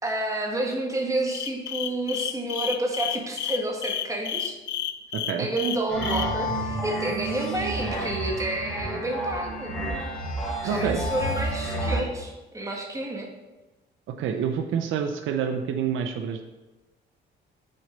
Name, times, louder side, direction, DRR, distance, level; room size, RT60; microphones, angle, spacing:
voice 1, 0.0-4.5 5.4-9.8 10.6-13.3, right 1 dB, 15° right, 0 dB, 1.6 m, -29 dB
sound 1, 1.3-6.3, left 10 dB, 65° left, 0.5 m, -30 dB
voice 2, 5.1-5.5 10.6-11.0 14.1-16.4, right 7 dB, 80° right, 7 dB, 0.6 m, -28 dB
sound 2, 5.9-12.0, right 1 dB, 5° left, 2.3 m, -30 dB
6.5 x 4.2 x 5.1 m, 1.1 s
cardioid pair, 90°, 20 cm